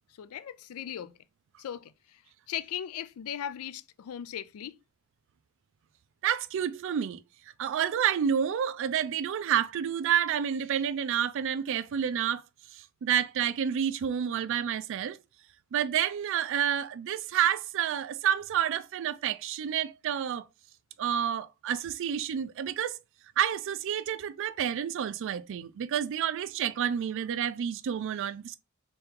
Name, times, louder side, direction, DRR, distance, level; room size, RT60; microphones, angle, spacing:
voice 1, 0.2-1.2 1.6-2.2 2.5-4.8, left 10 dB, 80° left, 0.3 m, -38 dB
voice 2, 6.2-7.2 7.6-12.4 12.7-15.2 15.7-20.4 21.0-23.0 23.4-28.6, right 9 dB, 60° right, 0.3 m, -29 dB
3.4 x 3.0 x 3.6 m
head